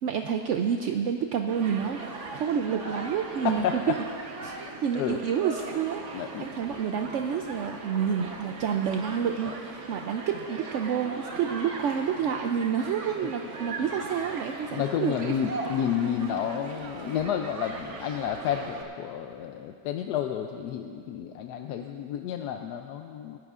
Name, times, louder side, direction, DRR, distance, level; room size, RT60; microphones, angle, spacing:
voice 1, 0.0-4.0 4.4-4.5 4.8-15.3, right 7 dB, 75° right, 4 dB, 0.6 m, -29 dB
Human group actions, 1.5-18.8, right 3 dB, 50° right, 1.3 m, -39 dB
voice 2, 3.4-3.8 4.9-5.2 6.1-6.5 9.5-9.6 13.2-13.3 14.7-23.4, left 9 dB, 75° left, 4 dB, 1.1 m, -30 dB
28.0 x 10.5 x 2.5 m, 2.4 s
omnidirectional pair, 1.8 m